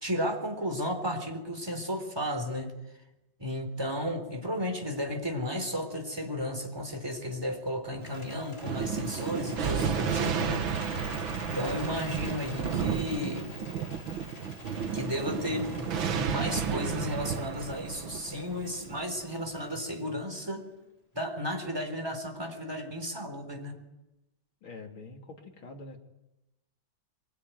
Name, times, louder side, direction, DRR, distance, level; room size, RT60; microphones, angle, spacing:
voice 1, 0.0-2.7 3.4-10.6 11.5-13.5 14.9-20.7 21.1-23.8, equal, 10° right, 4 dB, 4.0 m, -33 dB
Bird, 7.9-20.1, left 2 dB, 50° left, 5.8 m, -46 dB
Thunder, 8.6-19.5, right 7 dB, 75° right, 2.2 m, -32 dB
voice 2, 24.6-26.0, left 3 dB, 90° left, 2 dB, 3.6 m, -45 dB
24.0 x 22.0 x 9.4 m, 0.98 s
omnidirectional pair, 2.1 m